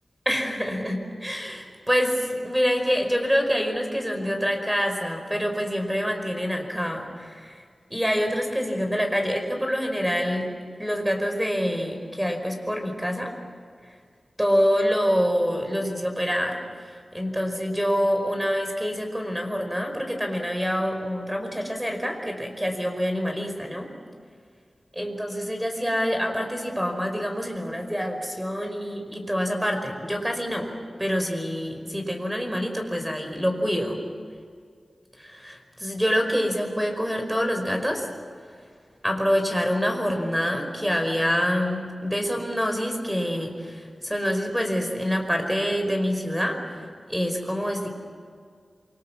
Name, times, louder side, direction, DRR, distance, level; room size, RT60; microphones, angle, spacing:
voice 1, 0.2-7.6 7.9-10.5 10.8-13.3 14.4-16.6 17.1-23.9 24.9-34.0 35.2-38.1 39.0-46.8 47.1-47.9, equal, 5° right, 4 dB, 4.9 m, -26 dB
28.0 x 25.0 x 7.4 m, 2.1 s
wide cardioid pair, 70°, 0 cm